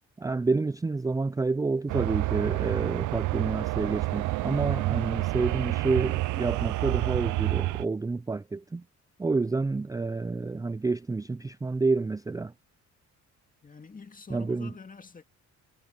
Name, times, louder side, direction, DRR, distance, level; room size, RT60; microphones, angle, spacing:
voice 1, 0.2-8.8 9.2-12.5 14.3-14.7, right 3 dB, 10° right, 0.4 m, -29 dB
sound 1, 1.9-7.8, right 19 dB, 75° right, 0.5 m, -28 dB
voice 2, 13.6-15.2, left 5 dB, 30° left, 2.0 m, -46 dB
cardioid pair, 90°, 30 cm